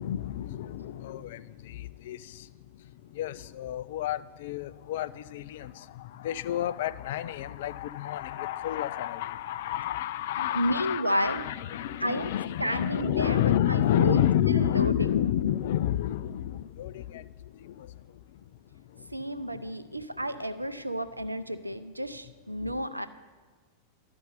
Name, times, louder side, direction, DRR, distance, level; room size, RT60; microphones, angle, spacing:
voice 1, 0.0-18.4 18.7-19.7 22.6-22.8, left 11 dB, 55° left, 15 dB, 0.3 m, -30 dB
voice 2, 10.5-11.4 12.0-12.3 12.6-14.2 14.5-15.1 19.1-23.1, equal, 85° right, 12 dB, 0.4 m, -31 dB
12.0 x 5.3 x 6.6 m, 1.5 s
figure-of-eight pair, 90°, 0 cm